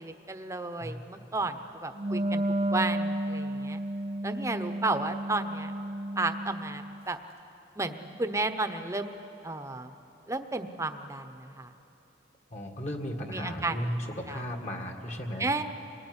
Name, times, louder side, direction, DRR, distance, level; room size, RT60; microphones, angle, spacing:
voice 1, 0.0-2.4 2.7-3.8 4.2-5.7 6.2-7.2 7.8-9.1 9.4-9.9 10.3-11.7 13.3-14.4 15.4-15.6, right 2 dB, 15° right, 8 dB, 1.0 m, -33 dB
Wind instrument woodwind instrument, 1.9-7.0, right 1 dB, 35° right, 0.6 m, -32 dB
voice 2, 12.5-15.5, equal, 40° left, 3 dB, 2.1 m, -35 dB
26.0 x 19.0 x 9.8 m, 3.0 s
head